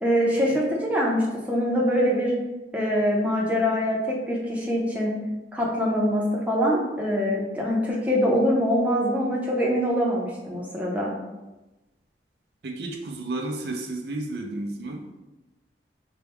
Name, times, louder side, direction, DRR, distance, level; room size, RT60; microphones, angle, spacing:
voice 1, 0.0-2.3 2.7-5.2 5.5-11.1, equal, 10° right, -4 dB, 0.6 m, -24 dB
voice 2, 12.6-15.0, right 2 dB, 65° right, 1 dB, 0.5 m, -32 dB
4.4 x 2.2 x 3.5 m, 1.1 s
head